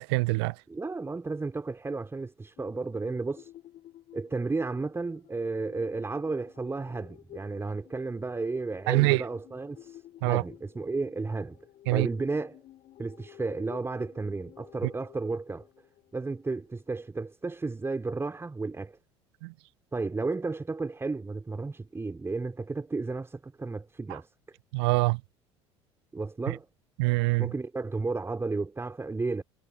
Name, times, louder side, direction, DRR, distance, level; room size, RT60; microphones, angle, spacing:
voice 1, 0.0-0.5 8.9-9.2 10.2-10.4 11.9-12.1 19.4-19.5 24.7-25.2 26.5-26.6 27.0-27.5, right 27 dB, 60° right, 0.4 m, -24 dB
voice 2, 0.7-3.5 4.1-11.6 11.9-12.6 13.0-15.7 16.1-19.0 19.9-24.3 26.1-26.7 27.4-29.4, right 3 dB, 15° right, 4.4 m, -33 dB
sound 1, 2.6-17.0, left 13 dB, 45° left, 5.3 m, -53 dB
figure-of-eight pair, 65°, 15 cm